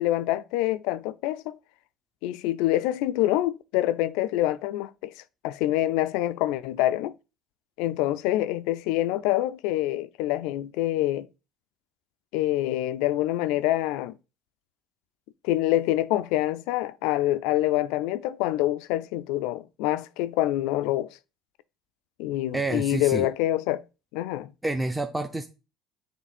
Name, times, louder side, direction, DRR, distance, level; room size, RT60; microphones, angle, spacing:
voice 1, 0.0-1.6 2.2-5.1 5.4-7.1 7.8-11.3 12.3-14.1 15.4-21.2 22.2-23.8 24.1-24.5, left 15 dB, 80° left, 0.3 m, -26 dB
voice 2, 22.5-23.3 24.6-25.4, right 2 dB, 10° right, 0.6 m, -28 dB
7.1 x 3.1 x 4.3 m
supercardioid pair, 95°, 0 cm